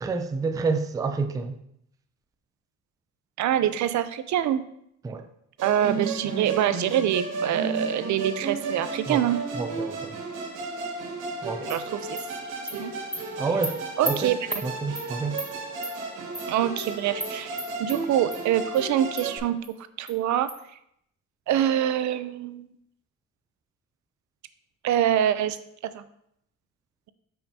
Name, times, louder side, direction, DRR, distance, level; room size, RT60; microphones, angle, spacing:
voice 1, 0.0-1.6 5.0-5.2 9.1-9.2 9.5-10.2 11.4-11.7 13.4-13.8 14.0-14.3 14.6-15.4, right 4 dB, 10° right, 7 dB, 0.3 m, -28 dB
voice 2, 3.4-4.6 5.6-9.4 11.7-12.2 12.7-12.9 14.0-14.4 16.5-19.6 20.0-20.5 21.5-22.7 24.8-25.6 25.9-26.0, right 11 dB, 70° right, 13 dB, 0.5 m, -25 dB
Musical instrument, 5.6-19.4, right 3 dB, 90° right, 2.1 m, -34 dB
Animal, 11.7-11.8 12.2-12.3 12.7-12.8 13.1-13.2 13.6-13.7 14.1-14.2 14.5-14.6 15.0-15.1 15.4-15.5 15.8-15.9 16.3-16.5 16.8-16.9 17.2-17.3 17.6-18.0 18.3-18.4 18.7-18.8 19.2-19.3 19.6-19.7 20.1-20.2 20.5-20.6, equal, 5° left, 0.8 m, -33 dB
8.5 x 5.6 x 2.7 m, 0.73 s
cardioid pair, 155°, 30 cm